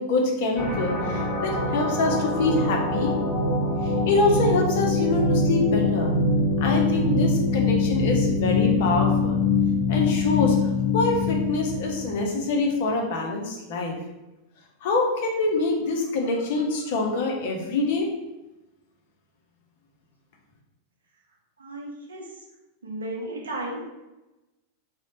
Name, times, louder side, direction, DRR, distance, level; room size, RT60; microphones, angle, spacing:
voice 1, 0.0-3.1 3.8-6.1 6.6-9.4 9.9-10.6 10.9-14.0 14.8-18.1, left 3 dB, 50° left, 1 dB, 0.5 m, -25 dB
sound 1, 0.6-12.3, left 3 dB, 5° right, 1.3 m, -24 dB
voice 2, 21.6-22.2 22.8-23.8, right 1 dB, 70° right, -1 dB, 0.5 m, -34 dB
2.7 x 2.0 x 2.8 m, 1.0 s
figure-of-eight pair, 90°, 0 cm